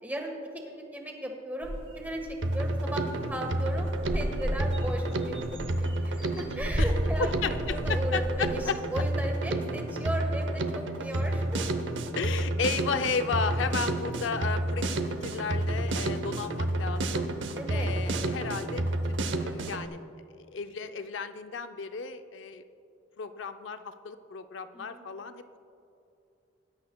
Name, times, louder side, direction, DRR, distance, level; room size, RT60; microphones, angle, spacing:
voice 1, 0.0-5.4 5.7-7.3 7.7-11.6 17.6-17.9 24.7-25.0, right 1 dB, 10° right, 1 dB, 1.4 m, -36 dB
sound 1, 1.6-2.4 2.8-2.9 3.2-3.4 3.7-8.7, equal, 25° right, 1.0 m, -34 dB
Drum kit, 2.4-19.9, right 1 dB, 75° right, 0.7 m, -30 dB
voice 2, 7.2-8.8 12.2-14.9 15.2-17.3 17.7-22.6 23.2-25.6, left 5 dB, 75° left, 9 dB, 0.5 m, -34 dB
19.5 x 10.5 x 2.3 m, 2.7 s
head